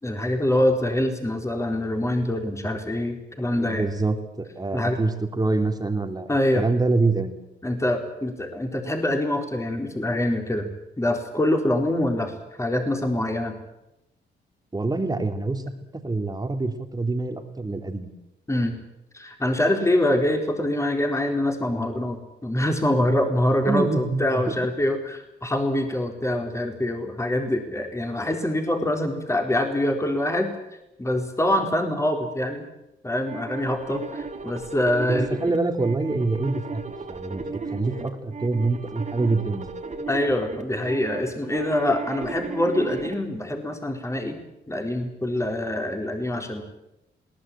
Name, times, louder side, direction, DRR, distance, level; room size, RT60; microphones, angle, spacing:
voice 1, 0.0-3.9 4.7-5.0 6.3-6.6 7.6-10.7 11.0-13.6 18.5-18.8 19.1-30.5 31.0-32.7 33.0-35.4 40.1-44.4 44.7-46.6, left 1 dB, 15° left, 3 dB, 4.2 m, -25 dB
voice 2, 3.5-7.4 14.7-15.6 15.9-18.1 23.7-24.5 35.1-36.8 37.1-39.7, right 3 dB, 20° right, 6 dB, 3.0 m, -26 dB
sound 1, 33.3-43.1, right 4 dB, 35° right, 3.2 m, -35 dB
21.5 x 18.5 x 8.9 m, 0.92 s
cardioid pair, 95°, 20 cm